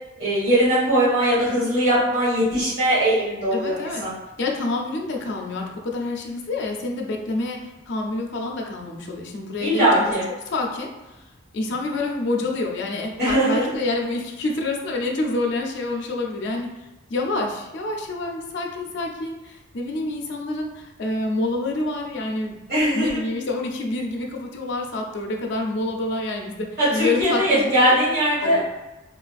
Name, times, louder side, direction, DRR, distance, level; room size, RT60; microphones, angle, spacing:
voice 1, 0.2-4.1 9.6-10.2 13.2-13.7 22.7-23.2 26.8-28.6, right 1 dB, 55° right, -12 dB, 1.4 m, -20 dB
voice 2, 3.5-4.1 4.4-10.1 10.5-11.2 11.5-22.6 22.9-28.0 28.4-28.6, left 2 dB, 60° left, 1 dB, 0.5 m, -27 dB
3.7 x 2.5 x 2.3 m, 1.0 s
head